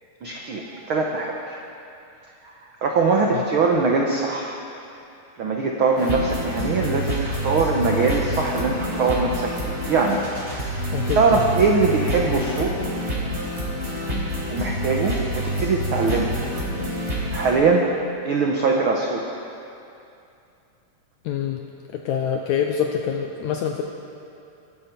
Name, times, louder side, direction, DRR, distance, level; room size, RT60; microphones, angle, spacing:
voice 1, 0.2-1.6 2.4-4.6 5.4-13.0 14.5-16.3 17.3-17.8 18.2-19.3, right 4 dB, 80° right, 0 dB, 1.1 m, -22 dB
sound 1, 6.0-17.5, equal, 15° right, 4.3 m, -27 dB
voice 2, 10.9-11.4 21.3-21.6 21.9-23.8, left 8 dB, 75° left, 3 dB, 1.8 m, -25 dB
23.0 x 12.0 x 4.5 m, 2.6 s
omnidirectional pair, 3.9 m